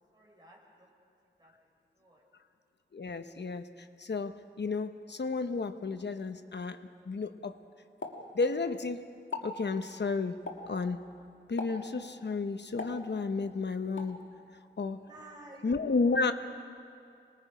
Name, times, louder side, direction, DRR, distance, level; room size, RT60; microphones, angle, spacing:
voice 1, 0.1-0.9 1.4-1.5 2.0-2.2 15.0-15.7, right 2 dB, 20° right, -4 dB, 5.9 m, -53 dB
voice 2, 2.9-6.8 7.0-7.6 8.3-9.1 9.4-10.4 10.7-11.0 11.5-14.2 14.8-15.0 15.6-16.3, left 4 dB, 65° left, 9 dB, 0.9 m, -32 dB
Explosion, 8.0-8.9 9.2-9.6 10.5-10.8 11.6-12.0 12.8-13.5 14.0-14.2, left 3 dB, 90° left, 1.8 m, -40 dB
26.0 x 20.5 x 5.1 m, 2.4 s
wide cardioid pair, 85°, 19 cm